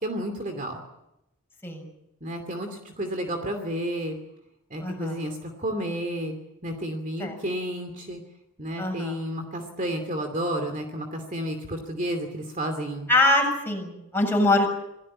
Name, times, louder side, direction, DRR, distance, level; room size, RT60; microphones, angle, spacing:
voice 1, 0.0-0.8 2.2-4.2 4.7-6.4 6.6-8.2 8.6-13.1, equal, 35° right, 6 dB, 2.7 m, -31 dB
voice 2, 4.8-5.2 7.2-7.4 8.8-9.1 13.1-14.7, left 2 dB, 10° left, 1 dB, 7.2 m, -23 dB
28.0 x 17.0 x 8.7 m, 0.89 s
head